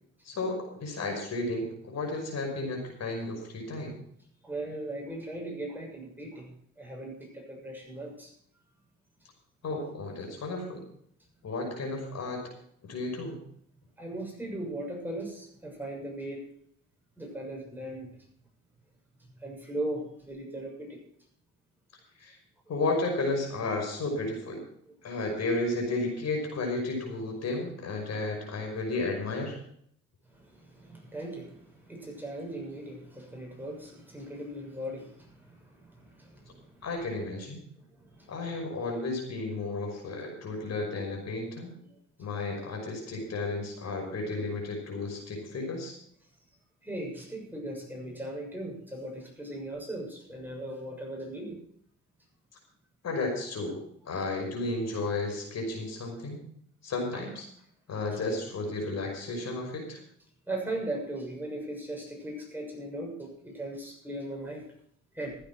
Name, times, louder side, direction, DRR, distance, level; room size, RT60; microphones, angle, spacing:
voice 1, 0.2-4.0 9.6-10.8 11.4-12.4 12.8-13.4 22.2-22.4 22.7-24.6 25.0-29.5 36.8-37.6 38.3-41.7 42.2-45.9 53.0-53.8 54.0-56.4 56.8-57.5 57.9-60.0, left 2 dB, 60° left, 1 dB, 5.7 m, -33 dB
voice 2, 4.4-8.3 14.0-16.5 17.2-18.2 19.4-21.0 30.3-36.8 38.0-38.3 41.9-42.0 46.8-51.6 60.5-64.7 65.1-65.4, right 1 dB, 5° right, -1 dB, 6.7 m, -38 dB
15.0 x 9.4 x 6.0 m, 0.66 s
cardioid pair, 90°, 30 cm